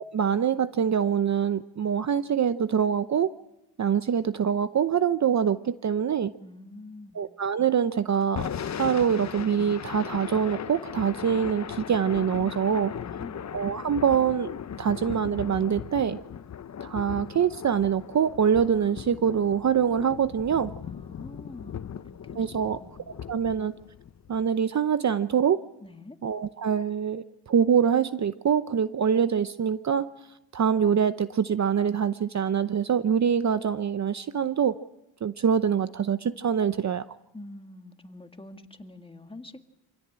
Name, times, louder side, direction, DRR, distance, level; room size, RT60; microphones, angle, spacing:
voice 1, 0.0-3.3 3.8-6.3 7.1-8.5 8.8-12.9 13.5-14.5 14.8-16.2 16.8-20.7 22.4-22.8 23.3-23.7 24.3-25.6 26.2-30.1 30.5-34.7 35.2-37.0, right 7 dB, 40° right, 13 dB, 0.8 m, -24 dB
voice 2, 6.4-7.2 13.0-13.4 20.8-21.9 22.2-23.0 25.8-26.2 37.3-39.6, left 2 dB, 10° left, 6 dB, 1.9 m, -45 dB
Thunder / Rain, 8.2-24.5, left 8 dB, 40° left, 0.8 m, -38 dB
26.0 x 17.0 x 8.8 m, 0.88 s
cardioid pair, 90°, 43 cm